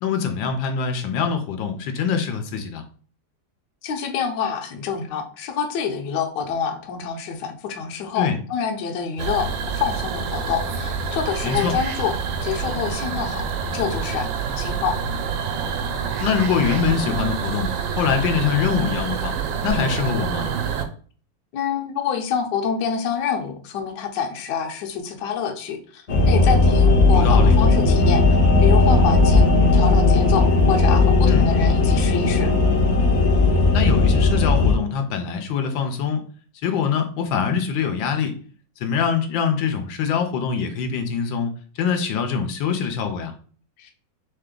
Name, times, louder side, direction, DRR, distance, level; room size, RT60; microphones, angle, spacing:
voice 1, 0.0-2.8 8.2-8.4 11.4-11.7 16.2-17.7 18.0-19.3 19.6-20.4 27.1-27.6 31.2-31.5 33.7-36.2 36.6-38.3 38.8-43.3, left 6 dB, 90° left, 5 dB, 1.4 m, -23 dB
voice 2, 3.8-12.1 12.4-13.4 13.7-14.3 14.6-15.0 21.5-29.4 29.7-32.5 43.8-43.9, left 7 dB, 70° left, 4 dB, 1.3 m, -27 dB
sound 1, 9.2-20.9, right 6 dB, 85° right, 1.4 m, -27 dB
sound 2, 26.1-34.8, left 3 dB, 55° left, 0.9 m, -16 dB
3.5 x 3.3 x 3.7 m, 0.43 s
omnidirectional pair, 2.0 m